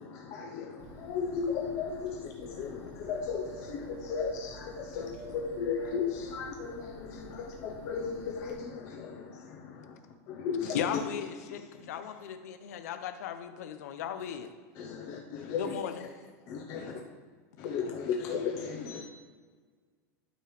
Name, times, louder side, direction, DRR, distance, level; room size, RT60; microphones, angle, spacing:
voice 1, 0.0-10.0 10.3-11.0 11.5-11.6 14.8-15.8 16.5-16.9 17.6-19.0, left 6 dB, 35° left, 1 dB, 0.7 m, -35 dB
Bird, 0.8-8.5, right 3 dB, 70° right, 1.4 m, -50 dB
voice 2, 10.7-14.5 15.6-16.1, left 9 dB, 75° left, 8 dB, 0.7 m, -36 dB
voice 3, 15.4-17.2, left 1 dB, 5° right, -4 dB, 1.6 m, -53 dB
12.0 x 4.9 x 3.2 m, 1.6 s
supercardioid pair, 170°, 9 cm